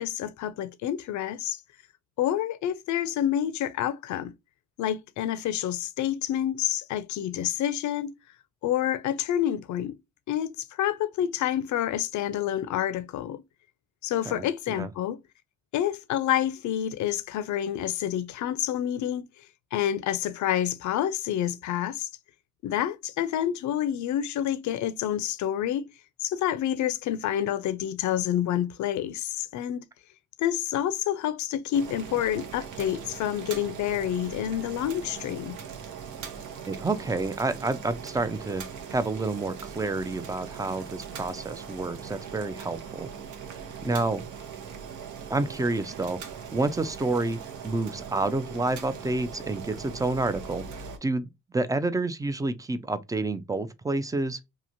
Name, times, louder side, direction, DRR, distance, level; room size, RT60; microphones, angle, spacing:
voice 1, 0.0-1.6 2.2-4.3 4.8-8.1 8.6-10.0 10.3-13.4 14.0-15.2 15.7-19.4 19.7-22.1 22.6-25.9 26.2-29.8 30.4-35.6, left 11 dB, 70° left, 0.5 m, -28 dB
Boiling, 31.7-51.0, right 7 dB, 80° right, 0.8 m, -40 dB
voice 2, 36.7-38.6 38.9-43.1 43.5-44.2 45.3-47.4 47.6-51.3 51.5-54.4, right 2 dB, 10° right, 0.3 m, -29 dB
2.9 x 2.4 x 2.5 m
cardioid pair, 90°, 30 cm